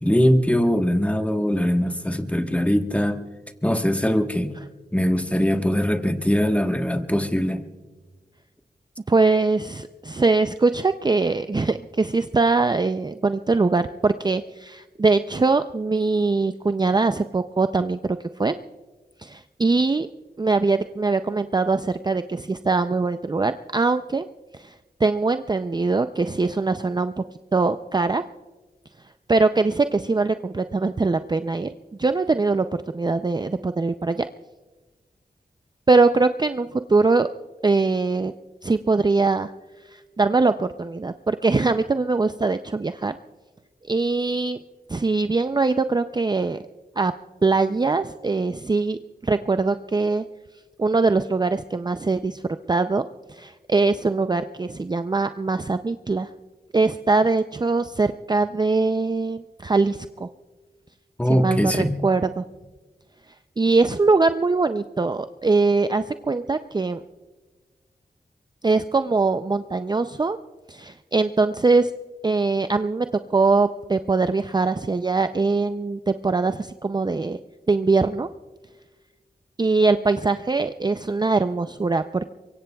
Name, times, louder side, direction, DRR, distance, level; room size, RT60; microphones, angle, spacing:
voice 1, 0.0-3.2 3.6-4.5 4.9-7.6 61.2-62.0, equal, 10° left, 5 dB, 1.2 m, -21 dB
voice 2, 9.1-18.6 19.2-20.1 20.4-24.3 24.5-24.7 25.0-27.2 27.5-28.2 29.3-31.7 32.0-32.7 32.9-34.3 35.9-37.3 37.6-38.3 38.6-39.5 39.8-43.2 43.8-44.6 44.9-46.6 47.0-47.1 47.4-50.2 50.8-52.4 52.7-53.0 53.3-56.3 56.7-60.3 61.3-62.4 63.6-67.0 68.6-70.4 70.7-71.9 72.2-73.1 73.3-77.4 77.7-78.3 79.6-82.3, right 3 dB, 25° right, 9 dB, 0.4 m, -22 dB
23.5 x 23.5 x 2.3 m, 1.3 s
wide cardioid pair, 60°, 17 cm